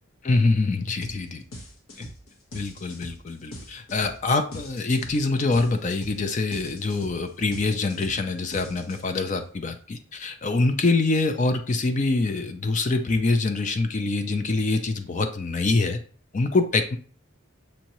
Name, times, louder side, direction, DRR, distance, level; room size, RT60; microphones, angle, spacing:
voice 1, 0.2-1.4 2.0-2.1 2.5-16.0 16.3-17.0, left 3 dB, 35° left, 7 dB, 0.4 m, -25 dB
sound 1, 1.0-1.2 1.5-9.3, left 1 dB, 80° left, 1.0 m, -42 dB
6.2 x 2.8 x 3.0 m, 0.42 s
head